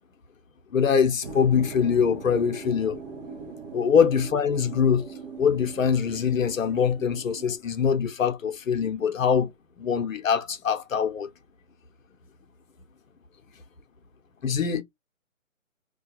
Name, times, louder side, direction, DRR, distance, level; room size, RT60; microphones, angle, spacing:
voice 1, 0.7-3.0 3.7-9.5 9.8-11.3 14.4-14.8, left 7 dB, 75° left, 0.7 m, -23 dB
sound 1, 1.2-7.6, right 4 dB, 30° right, 0.7 m, -40 dB
2.3 x 2.3 x 2.8 m
hypercardioid pair, 150°, 41 cm